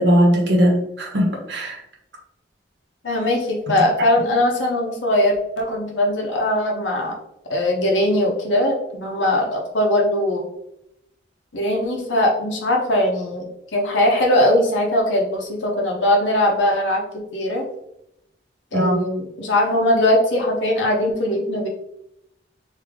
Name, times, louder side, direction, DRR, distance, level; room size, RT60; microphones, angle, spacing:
voice 1, 0.0-1.8 18.7-19.0, equal, 70° right, -1 dB, 1.0 m, -18 dB
voice 2, 3.0-7.1 7.5-10.4 11.5-13.5 13.7-17.6 18.7-21.7, left 1 dB, 90° left, -1 dB, 0.9 m, -20 dB
3.3 x 2.8 x 3.6 m, 0.79 s
head